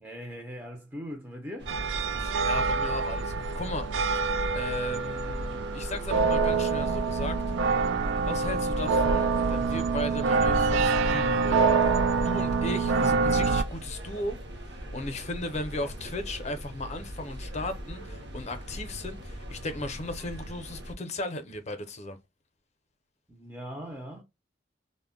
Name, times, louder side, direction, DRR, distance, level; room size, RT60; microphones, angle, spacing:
voice 1, 0.0-1.7 23.3-24.2, equal, 10° right, 0.4 m, -40 dB
sound 1, 1.6-20.9, equal, 65° right, 0.7 m, -40 dB
sound 2, 1.7-13.6, right 4 dB, 90° right, 0.3 m, -26 dB
voice 2, 2.2-3.9 4.5-7.4 8.3-11.7 12.2-22.2, left 2 dB, 40° left, 0.5 m, -36 dB
2.1 x 2.0 x 3.5 m
head